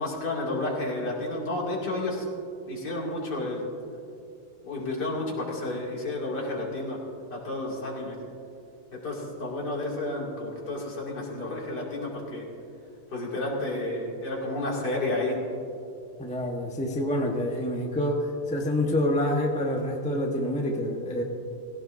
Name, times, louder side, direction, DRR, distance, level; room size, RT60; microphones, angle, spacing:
voice 1, 0.0-2.3 2.7-3.7 4.6-7.0 7.3-8.2 8.9-12.5 13.1-15.4, left 2 dB, 50° left, -4 dB, 3.1 m, -31 dB
voice 2, 16.2-21.2, left 1 dB, 5° left, 0 dB, 0.6 m, -27 dB
18.5 x 16.5 x 2.7 m, 2.5 s
omnidirectional pair, 2.3 m